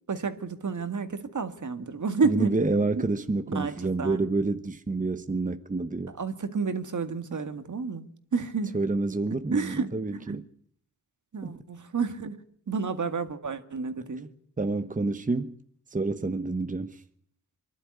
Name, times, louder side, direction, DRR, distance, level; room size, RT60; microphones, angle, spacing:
voice 1, 0.1-2.6 3.5-4.3 6.1-8.7 9.5-10.4 11.3-12.4 12.7-14.3, right 5 dB, 55° right, 2.0 m, -30 dB
voice 2, 2.2-6.2 8.7-10.4 11.4-11.5 14.6-15.5 15.9-17.0, right 3 dB, 20° right, 1.1 m, -28 dB
23.5 x 11.5 x 9.7 m
cardioid pair, 55°, 35 cm